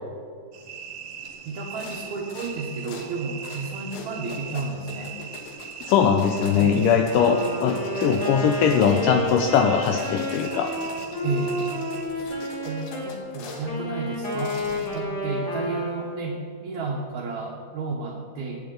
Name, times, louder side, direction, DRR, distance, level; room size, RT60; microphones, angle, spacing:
sound 1, 0.5-12.0, right 7 dB, 80° right, 1.3 m, -40 dB
sound 2, 1.2-1.4 1.7-2.0 2.3-3.1 3.4-3.7 3.9-13.7 14.1-15.1, left 4 dB, 70° left, 2.9 m, -42 dB
voice 1, 1.5-5.2 6.5-6.8 11.2-11.6 12.2-12.3 12.7-14.6 14.9-18.6, right 3 dB, 65° right, -2 dB, 2.0 m, -32 dB
voice 2, 5.9-10.7, left 7 dB, 85° left, 4 dB, 1.8 m, -21 dB
Wind instrument woodwind instrument, 7.0-13.1 13.6-16.3, left 1 dB, 25° left, 3.7 m, -30 dB
19.0 x 9.0 x 3.9 m, 2.2 s
omnidirectional pair, 4.6 m